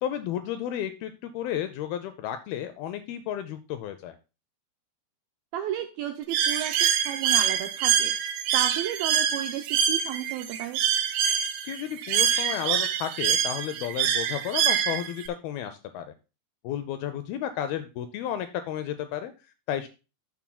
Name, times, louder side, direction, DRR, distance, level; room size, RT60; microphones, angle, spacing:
voice 1, 0.0-4.2 11.6-16.1 16.6-19.3 19.7-19.9, left 10 dB, 80° left, 9 dB, 2.2 m, -32 dB
voice 2, 5.5-8.1 8.5-10.8, right 10 dB, 90° right, 7 dB, 2.1 m, -33 dB
Bird, 6.3-15.3, right 9 dB, 75° right, 2.4 m, -25 dB
13.0 x 7.2 x 2.2 m, 0.30 s
omnidirectional pair, 4.9 m